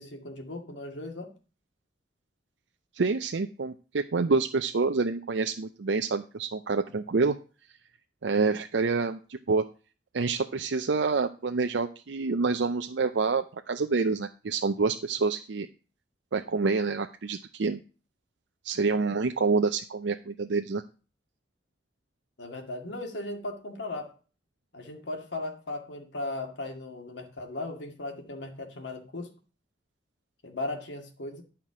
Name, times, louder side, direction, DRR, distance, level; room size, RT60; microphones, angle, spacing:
voice 1, 0.0-1.3 22.4-24.1 24.7-29.3 30.4-31.4, left 2 dB, 80° left, 4 dB, 2.1 m, -37 dB
voice 2, 2.9-7.3 8.2-9.6 10.1-15.7 16.3-17.8 18.6-20.8, right 4 dB, 75° right, 6 dB, 0.6 m, -27 dB
11.0 x 5.9 x 4.9 m, 0.36 s
head